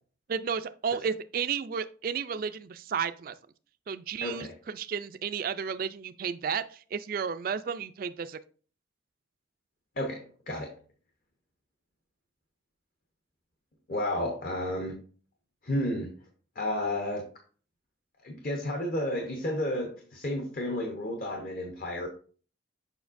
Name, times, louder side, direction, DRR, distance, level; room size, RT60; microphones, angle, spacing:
voice 1, 0.3-3.3 3.9-8.4, right 6 dB, 50° right, 11 dB, 0.3 m, -32 dB
voice 2, 4.2-4.5 10.0-10.7 13.9-15.0 15.6-16.1 16.5-17.3 18.2-22.1, left 1 dB, 50° left, 2 dB, 0.9 m, -32 dB
7.1 x 5.5 x 2.5 m, 0.40 s
head